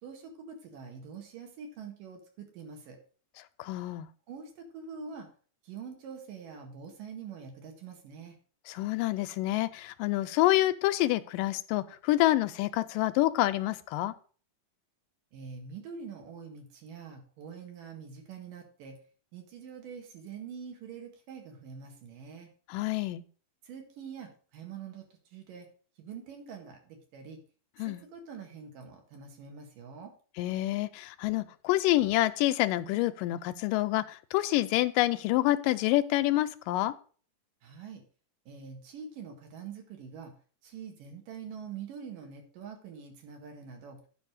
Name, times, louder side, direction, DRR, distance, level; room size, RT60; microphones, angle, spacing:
voice 1, 0.0-3.0 4.3-5.3 5.6-8.4 15.3-19.0 19.3-22.5 23.6-25.1 25.3-25.7 26.0-27.4 27.8-30.1 37.6-38.0 38.5-40.3 40.6-44.0, right 6 dB, 75° right, 3 dB, 3.5 m, -45 dB
voice 2, 3.6-4.1 8.7-14.1 22.7-23.2 27.8-28.0 30.4-36.9, left 16 dB, 80° left, 12 dB, 2.1 m, -27 dB
9.8 x 5.3 x 6.4 m, 0.41 s
omnidirectional pair, 4.0 m